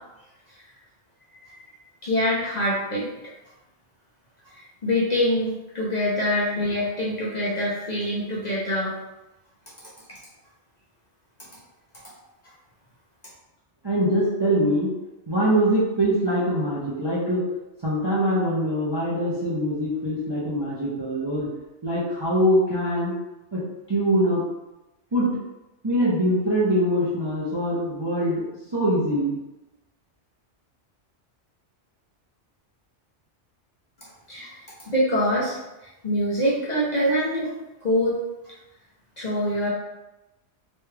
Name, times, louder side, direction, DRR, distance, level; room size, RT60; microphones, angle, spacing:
voice 1, 2.0-3.1 4.5-8.9 34.3-34.6 34.9-35.6 36.0-37.5 37.8-38.2 39.2-39.7, left 1 dB, 45° left, -6 dB, 0.7 m, -24 dB
voice 2, 13.8-14.9 15.3-17.4 17.8-21.5 21.8-23.1 23.5-23.6 23.9-24.4 25.1-25.3 25.8-28.4 28.7-29.4, equal, 30° right, -8 dB, 0.5 m, -23 dB
3.1 x 2.3 x 3.2 m, 0.99 s
omnidirectional pair, 1.2 m